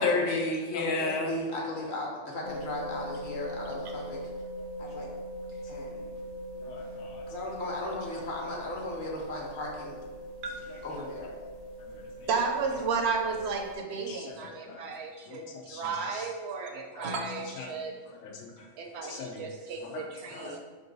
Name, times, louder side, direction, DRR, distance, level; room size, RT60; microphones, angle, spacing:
voice 1, 0.0-1.4 5.7-5.8 6.6-7.2 10.9-11.1 11.9-12.3 14.1-14.9 15.3-16.3 17.0-17.1 17.6-17.7 18.0-18.7 19.0-19.4 19.8-20.6, left 3 dB, 90° left, 0 dB, 1.0 m, -34 dB
voice 2, 0.7-4.2 4.8-5.1 5.7-6.1 7.3-10.0 10.8-11.3, left 1 dB, 50° left, -2 dB, 0.9 m, -36 dB
sound 1, 2.4-13.8, equal, 70° left, 0.3 m, -41 dB
voice 3, 12.3-17.9 18.8-20.6, right 5 dB, 70° right, 3 dB, 0.8 m, -33 dB
3.7 x 2.5 x 3.9 m, 1.4 s
omnidirectional pair, 1.2 m